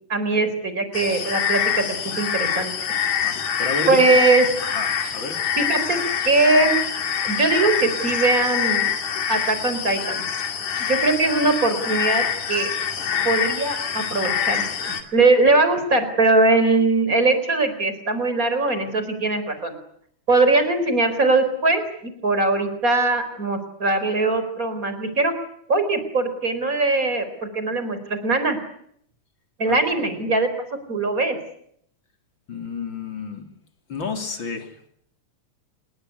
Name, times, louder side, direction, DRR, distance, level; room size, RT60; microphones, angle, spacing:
voice 1, 0.1-1.8 2.2-2.7 3.9-4.5 5.6-6.0 6.2-6.8 7.2-8.9 9.3-10.2 10.9-12.7 13.2-19.8 20.3-25.3 25.7-28.6 29.6-30.5 30.9-31.4, right 3 dB, 25° right, 10 dB, 4.5 m, -21 dB
sound 1, 0.9-15.0, left 8 dB, 75° left, 4.0 m, -25 dB
voice 2, 3.1-4.0 4.6-5.4 29.7-29.8 32.5-33.4 33.9-34.9, left 4 dB, 40° left, 6 dB, 3.7 m, -31 dB
27.0 x 21.5 x 9.7 m, 0.70 s
omnidirectional pair, 3.5 m